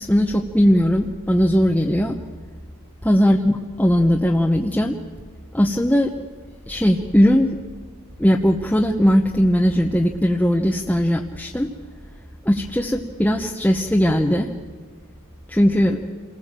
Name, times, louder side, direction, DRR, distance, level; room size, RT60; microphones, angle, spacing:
voice 1, 0.0-2.1 3.0-3.5 3.8-4.9 5.5-6.1 6.7-7.5 8.2-11.7 12.4-14.5 15.5-16.0, equal, 5° left, 0 dB, 1.0 m, -18 dB
28.5 x 19.5 x 7.5 m, 1.5 s
head